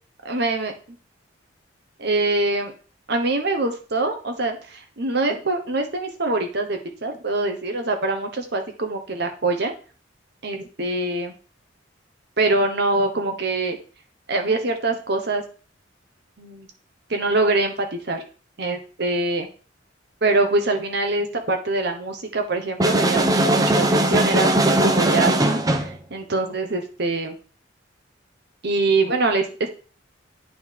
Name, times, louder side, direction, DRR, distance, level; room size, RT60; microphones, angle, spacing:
voice 1, 0.2-0.7 2.0-2.7 3.1-9.7 10.4-11.3 12.4-13.8 14.3-15.4 16.4-16.7 17.1-18.2 18.6-19.5 20.2-27.3 28.6-29.7, right 2 dB, 60° right, 4 dB, 1.2 m, -24 dB
sound 1, 22.8-26.0, right 1 dB, 20° right, 0.6 m, -19 dB
9.0 x 3.6 x 4.7 m, 0.39 s
head